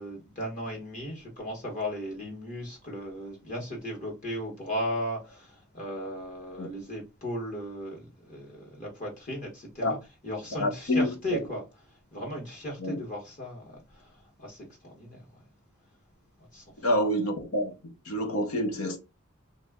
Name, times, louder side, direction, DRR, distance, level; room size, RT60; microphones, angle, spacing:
voice 1, 0.0-10.0 10.2-11.6 12.1-14.1 14.4-15.2 16.5-16.6, equal, 40° left, 1.0 m, -36 dB
voice 2, 10.6-11.4 12.8-13.0 16.8-19.0, left 1 dB, 75° left, 0.8 m, -28 dB
3.1 x 2.3 x 3.4 m
head